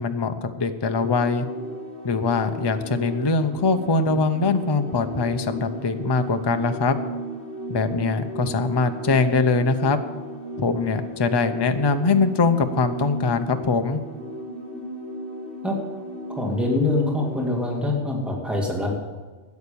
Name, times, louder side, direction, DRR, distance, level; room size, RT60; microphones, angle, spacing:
voice 1, 0.0-1.5 2.0-7.0 7.7-10.0 10.6-14.0, left 4 dB, 25° left, 7 dB, 0.7 m, -22 dB
sound 1, 0.8-17.9, right 1 dB, 85° right, 3.4 m, -35 dB
voice 2, 16.3-19.0, left 2 dB, ahead, -1 dB, 2.2 m, -24 dB
13.0 x 9.4 x 6.9 m, 1.3 s
omnidirectional pair, 1.2 m